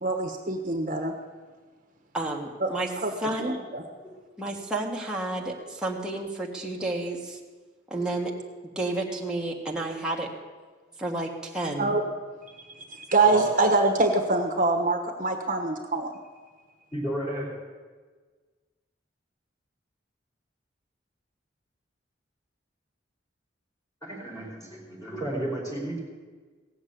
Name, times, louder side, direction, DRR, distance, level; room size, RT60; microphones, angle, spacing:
voice 1, 0.0-1.1 2.6-2.7 3.0-3.1 3.4-3.8 11.8-12.0 12.5-16.1, right 3 dB, 45° right, 3 dB, 1.2 m, -25 dB
voice 2, 2.1-2.9 3.2-3.5 4.4-7.4 7.9-8.3 8.7-10.3 11.0-11.9, right 2 dB, 5° right, -3 dB, 1.5 m, -31 dB
voice 3, 16.9-17.5 24.0-26.0, right 1 dB, 20° left, -4 dB, 5.1 m, -32 dB
17.5 x 7.4 x 8.5 m, 1.4 s
head